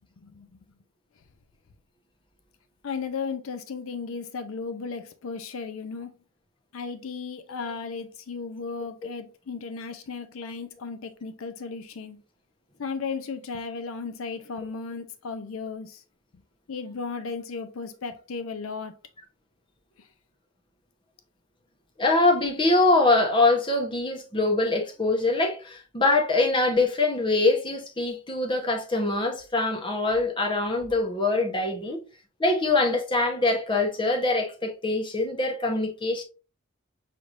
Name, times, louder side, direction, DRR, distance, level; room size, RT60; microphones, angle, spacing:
voice 1, 0.2-0.6 2.8-6.1 6.7-12.2 12.8-16.0 16.7-19.0, left 5 dB, 80° left, 0.5 m, -35 dB
voice 2, 22.0-32.0 32.4-36.2, left 2 dB, 25° left, 0.8 m, -23 dB
5.7 x 3.2 x 2.5 m
head